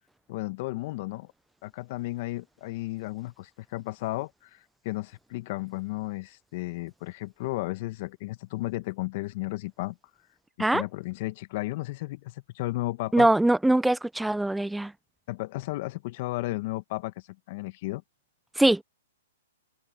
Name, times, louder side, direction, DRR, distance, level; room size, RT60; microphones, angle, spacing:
voice 1, 0.3-1.3 1.6-10.0 10.6-13.3 15.3-17.1 17.5-18.0, left 20 dB, 45° left, 1.5 m, -34 dB
voice 2, 13.1-14.9 18.6-18.8, right 1 dB, 5° right, 0.5 m, -22 dB
hypercardioid pair, 125°, 0 cm